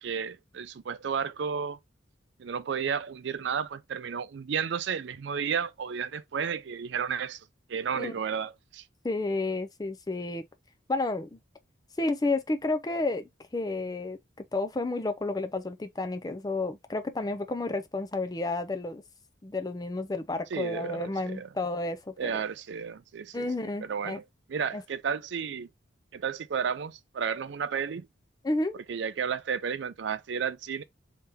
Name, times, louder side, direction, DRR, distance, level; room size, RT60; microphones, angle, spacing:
voice 1, 0.0-1.8 2.4-7.4 7.7-8.8 20.5-21.5 22.2-24.2 24.5-25.7 26.1-28.1 28.9-30.8, right 6 dB, 65° right, 0.4 m, -32 dB
voice 2, 9.0-10.4 10.9-11.4 12.0-14.2 14.5-19.0 19.4-22.3 23.3-24.2 24.7-24.8 28.4-28.8, left 2 dB, 20° left, 0.4 m, -31 dB
3.4 x 2.8 x 3.3 m
head